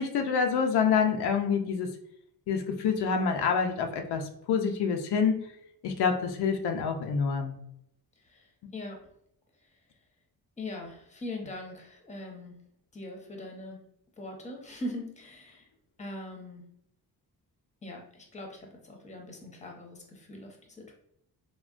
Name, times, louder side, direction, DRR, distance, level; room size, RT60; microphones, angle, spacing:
voice 1, 0.0-1.9 2.5-5.5 5.8-7.6, left 6 dB, 90° left, 4 dB, 0.5 m, -27 dB
voice 2, 8.2-9.0 10.6-12.5 12.9-13.8 14.2-15.7 16.0-16.6 17.8-20.9, left 1 dB, 20° left, 2 dB, 0.7 m, -41 dB
3.5 x 2.2 x 2.4 m, 0.75 s
cardioid pair, 110°, 38 cm